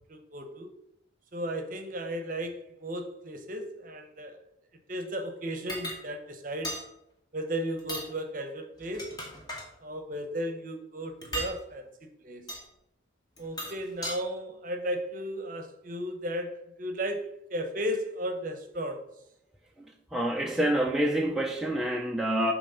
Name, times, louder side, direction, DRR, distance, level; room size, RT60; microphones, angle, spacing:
voice 1, 0.1-0.7 1.3-4.4 4.9-6.8 7.3-9.1 9.8-12.4 13.4-19.0, equal, 40° right, 7 dB, 0.8 m, -35 dB
sound 1, 5.7-6.0 6.6-6.9 7.8-8.1 8.8-9.7 11.2-11.6 12.5-12.6 13.4-14.2, equal, 20° left, 1.1 m, -36 dB
voice 2, 19.8-22.5, right 1 dB, ahead, 0 dB, 0.4 m, -27 dB
7.2 x 3.0 x 5.5 m, 0.79 s
head